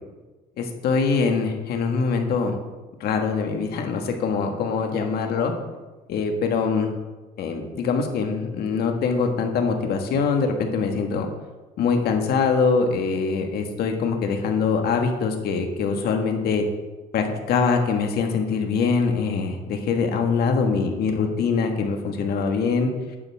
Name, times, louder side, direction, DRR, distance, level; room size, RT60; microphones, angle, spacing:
voice 1, 0.6-2.5 3.0-5.5 6.1-6.9 7.4-11.3 11.8-16.6 17.1-22.9, left 5 dB, 70° left, 4 dB, 1.7 m, -23 dB
11.5 x 9.6 x 3.6 m, 1.2 s
cardioid pair, 110°, 17 cm